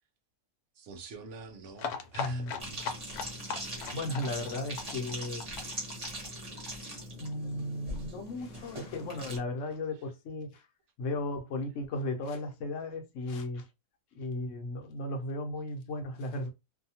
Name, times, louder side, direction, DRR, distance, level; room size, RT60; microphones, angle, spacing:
voice 1, 0.8-2.9, right 4 dB, 65° right, 0.7 m, -47 dB
sound 1, 1.8-7.3 7.6-7.7 7.9-8.0 8.3-8.4, left 6 dB, 80° left, 1.1 m, -39 dB
voice 2, 2.2-2.5 3.9-5.4 7.2-10.6 11.0-13.7 14.1-16.5, left 2 dB, 60° left, 1.0 m, -35 dB
sound 2, 2.6-9.4, right 1 dB, 30° right, 1.0 m, -41 dB
2.7 x 2.3 x 2.8 m
omnidirectional pair, 1.6 m